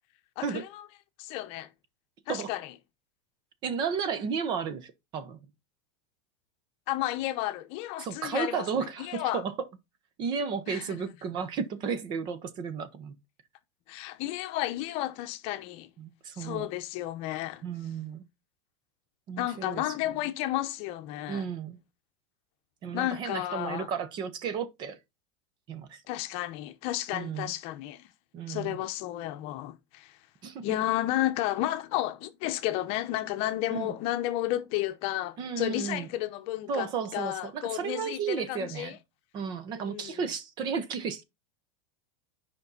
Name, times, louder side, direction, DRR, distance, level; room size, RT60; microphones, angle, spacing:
voice 1, 0.4-0.8 1.2-1.7 2.3-2.7 6.9-8.7 9.0-9.4 10.7-11.0 13.9-15.9 16.4-17.6 19.4-21.5 22.9-23.9 26.1-28.1 28.5-30.2 30.6-39.0 39.7-40.2, left 15 dB, 45° left, 0.9 m, -32 dB
voice 2, 3.6-5.5 8.0-9.5 10.2-13.1 16.0-16.7 17.6-18.2 19.3-19.8 21.3-21.8 22.8-25.0 25.7-26.0 27.1-27.5 28.3-28.8 30.4-30.8 33.7-33.9 35.4-36.1 36.7-39.0 39.3-41.2, right 6 dB, 30° right, 0.9 m, -33 dB
9.6 x 5.3 x 4.0 m
supercardioid pair, 160°, 14 cm